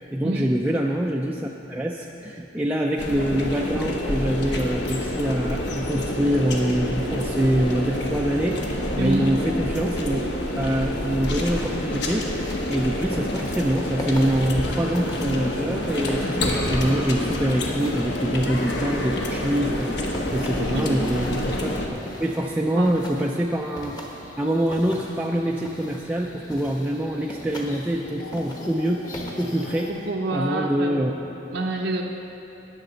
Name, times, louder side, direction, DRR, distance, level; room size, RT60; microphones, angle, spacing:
voice 1, 0.0-8.6 9.0-10.2 10.6-24.0 24.4-29.0 29.4-29.9 30.3-31.1, equal, 10° right, -1 dB, 0.4 m, -25 dB
sound 1, 3.0-21.9, left 1 dB, 65° left, 1.1 m, -27 dB
voice 2, 9.0-9.3 20.6-21.0 22.7-23.0 29.9-31.2 31.5-32.0, right 2 dB, 75° right, -1 dB, 0.7 m, -27 dB
sound 2, 10.9-30.1, equal, 20° left, 1.1 m, -42 dB
sound 3, 20.2-29.9, left 1 dB, 45° left, 1.1 m, -43 dB
19.0 x 6.6 x 3.9 m, 3.0 s
head